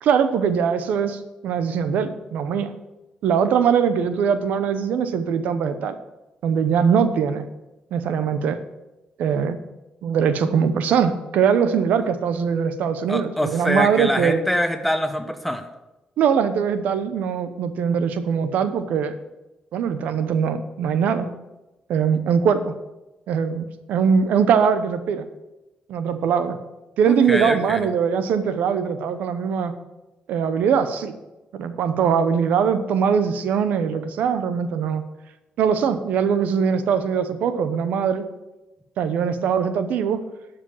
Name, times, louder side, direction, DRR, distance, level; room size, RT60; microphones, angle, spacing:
voice 1, 0.0-2.7 3.2-6.0 6.4-7.4 7.9-8.6 9.2-9.6 10.0-14.4 16.2-19.2 19.7-21.3 21.9-22.7 23.3-25.3 25.9-26.6 27.0-29.7 30.3-31.1 31.5-35.0 35.6-38.2 39.0-40.2, right 7 dB, 85° right, 10 dB, 0.8 m, -21 dB
voice 2, 13.1-15.6 27.0-27.8, equal, 5° left, 7 dB, 1.0 m, -24 dB
12.0 x 5.1 x 7.1 m, 1.0 s
cardioid pair, 95°, 3 cm